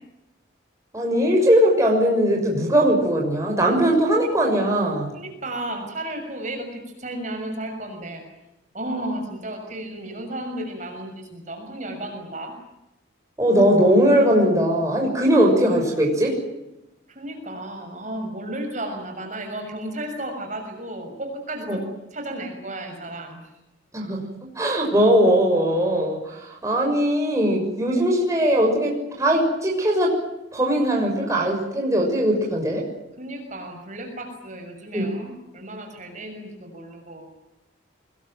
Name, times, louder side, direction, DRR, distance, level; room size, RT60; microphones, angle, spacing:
voice 1, 0.9-5.1 13.4-16.4 21.7-21.8 23.9-24.2 24.6-30.2 30.5-32.9 34.9-35.1, equal, 15° right, -1 dB, 6.5 m, -20 dB
voice 2, 5.1-8.2 8.7-12.5 17.1-21.8 22.1-23.4 33.2-37.3, right 1 dB, 35° right, 4 dB, 6.3 m, -33 dB
25.0 x 21.5 x 9.2 m, 0.94 s
head